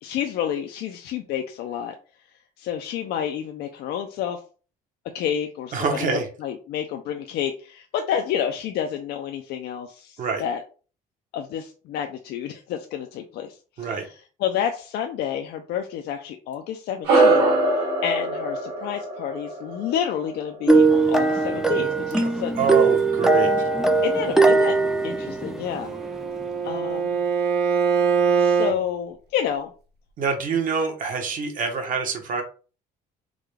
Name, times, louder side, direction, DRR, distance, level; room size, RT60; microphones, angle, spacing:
voice 1, 0.0-1.9 2.6-4.4 5.1-10.6 11.3-13.9 14.4-17.4 17.7-22.6 24.0-24.8 25.0-25.9 26.6-27.2 28.4-29.7, left 9 dB, 75° left, 4 dB, 0.4 m, -29 dB
voice 2, 5.7-6.3 10.2-10.4 13.8-14.1 22.2-23.5 30.2-32.4, right 5 dB, 50° right, 4 dB, 1.0 m, -26 dB
sound 1, 17.0-21.8, right 2 dB, 90° right, 1.7 m, -23 dB
sound 2, 20.7-26.1, right 3 dB, 5° right, 0.4 m, -20 dB
Bowed string instrument, 25.6-28.8, right 6 dB, 70° right, 0.7 m, -23 dB
3.7 x 2.2 x 3.3 m, 0.37 s
cardioid pair, 110°, 17 cm